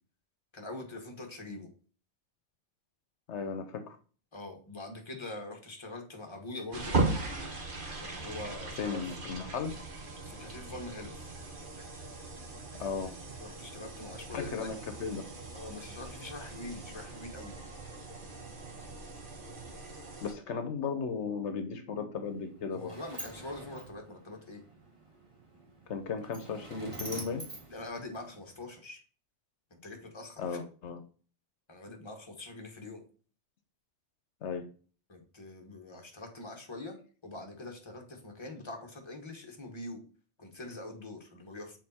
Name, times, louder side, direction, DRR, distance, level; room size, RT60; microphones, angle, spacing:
voice 1, 0.5-1.7 4.3-6.9 8.0-9.0 10.3-11.3 13.4-14.7 15.5-17.5 22.7-24.6 27.7-29.0 29.7-30.6 31.7-33.0 35.1-40.0 40.4-41.8, left 2 dB, 25° left, 2 dB, 1.4 m, -44 dB
voice 2, 3.3-4.0 8.8-9.7 12.7-13.1 14.3-15.3 20.2-22.9 25.9-27.5 30.4-31.0 34.4-34.6, left 5 dB, 80° left, 8 dB, 1.1 m, -36 dB
sound 1, 6.7-20.3, right 3 dB, 50° right, 1.2 m, -38 dB
Sliding door, 22.2-28.6, right 1 dB, 30° right, 1.4 m, -47 dB
6.5 x 4.0 x 4.2 m, 0.40 s
omnidirectional pair, 1.2 m